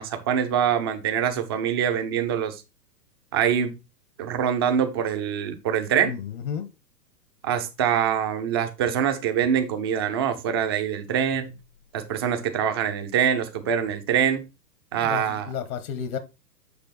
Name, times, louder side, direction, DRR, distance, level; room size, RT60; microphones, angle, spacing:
voice 1, 0.0-2.6 3.3-3.7 4.2-6.1 7.4-11.6 11.9-14.5 14.9-15.5, right 8 dB, 20° right, 0.3 m, -24 dB
voice 2, 6.0-6.7 15.0-16.2, left 8 dB, 60° left, 1.2 m, -32 dB
6.9 x 5.0 x 4.0 m
hypercardioid pair, 125°, 48 cm